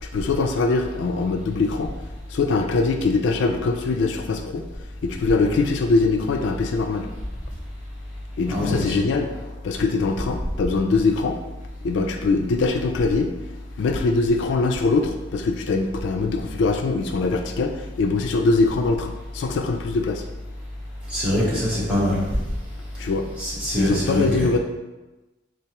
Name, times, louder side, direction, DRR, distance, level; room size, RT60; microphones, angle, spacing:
voice 1, 0.0-1.9 2.3-4.7 5.0-7.1 8.4-9.3 9.6-11.4 11.8-13.3 13.8-20.2 23.0-23.3 23.8-24.6, left 3 dB, 70° left, 5 dB, 0.3 m, -22 dB
voice 2, 8.5-8.9 21.1-22.2 23.4-24.5, left 1 dB, 5° right, -9 dB, 1.2 m, -23 dB
3.7 x 3.3 x 2.9 m, 1.1 s
head